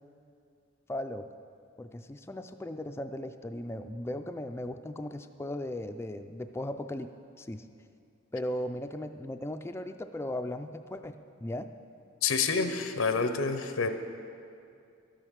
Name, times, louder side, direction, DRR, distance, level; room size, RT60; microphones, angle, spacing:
voice 1, 0.9-1.3 1.8-7.1 7.4-7.7 8.3-11.7, left 1 dB, 10° left, 7 dB, 0.3 m, -37 dB
voice 2, 12.2-13.9, left 5 dB, 90° left, 8 dB, 0.7 m, -28 dB
12.0 x 9.0 x 6.5 m, 2.5 s
head